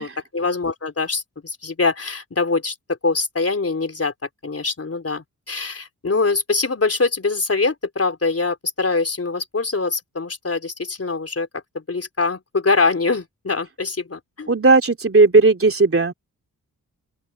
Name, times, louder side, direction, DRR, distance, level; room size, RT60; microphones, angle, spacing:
voice 1, 0.0-2.7 3.0-4.1 4.4-11.5 11.7-14.5, left 3 dB, 40° left, 4.0 m, -23 dB
voice 2, 14.5-16.1, right 3 dB, 35° right, 3.3 m, -15 dB
open air
cardioid pair, 50°, 38 cm